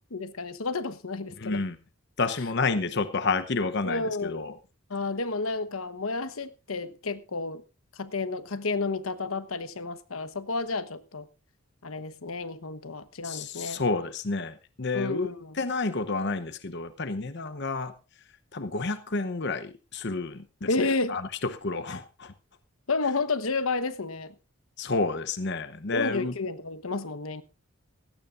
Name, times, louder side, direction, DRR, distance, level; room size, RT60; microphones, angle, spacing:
voice 1, 0.0-1.6 3.8-4.5 4.9-7.6 7.9-11.3 11.8-13.8 14.9-15.6 20.7-21.2 22.9-24.3 25.9-27.4, left 3 dB, 75° left, 1.1 m, -31 dB
voice 2, 1.4-1.8 2.2-4.5 13.2-15.3 15.5-17.9 18.5-22.3 24.8-26.3, left 3 dB, 50° left, 0.9 m, -30 dB
18.0 x 16.0 x 2.6 m
head